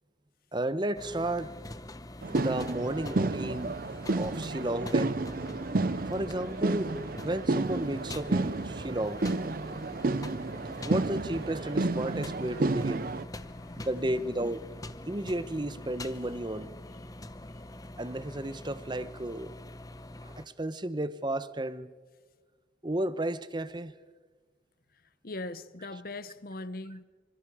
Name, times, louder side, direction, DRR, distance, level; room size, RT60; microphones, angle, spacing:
voice 1, 0.5-1.5 2.3-3.8 4.1-5.2 6.1-9.2 10.0-10.2 10.8-13.1 13.8-14.7 15.1-16.7 18.0-19.5 20.2-21.9 22.8-23.9, right 1 dB, 25° right, 0.9 m, -33 dB
sound 1, 0.9-20.5, left 1 dB, 20° left, 0.9 m, -44 dB
sound 2, 2.2-13.2, right 2 dB, 50° right, 0.6 m, -31 dB
voice 2, 13.2-14.8 16.0-16.6 16.9-17.1 17.5-17.8 24.9-27.0, left 2 dB, 50° left, 0.9 m, -43 dB
26.0 x 25.5 x 4.9 m
head